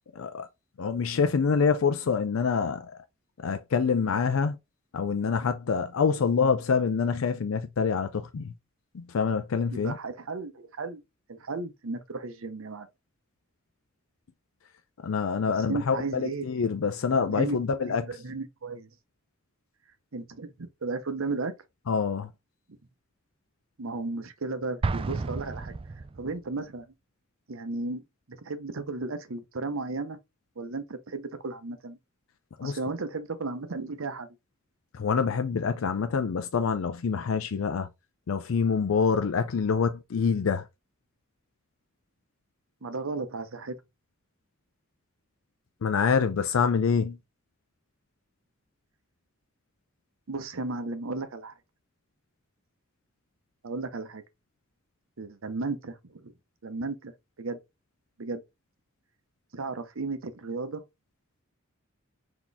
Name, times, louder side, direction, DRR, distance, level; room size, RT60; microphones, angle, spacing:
voice 1, 0.1-0.5 0.8-2.9 3.4-4.6 4.9-8.5 8.9-10.0 15.0-18.1 21.9-22.3 32.6-32.8 34.9-37.9 38.3-40.6 45.8-47.2, left 5 dB, 85° left, 0.4 m, -26 dB
voice 2, 9.7-11.0 11.3-12.9 15.5-16.5 17.2-18.9 20.1-21.5 23.8-25.8 26.2-26.9 27.5-28.0 28.3-30.2 30.6-32.0 32.6-34.3 42.8-43.7 50.3-51.5 53.6-54.2 55.2-56.3 56.6-57.1 57.4-57.6 58.2-58.4 59.5-60.8, right 3 dB, 85° right, 0.8 m, -34 dB
Explosion, 24.8-26.5, right 3 dB, 25° right, 0.3 m, -32 dB
4.1 x 2.9 x 3.4 m
head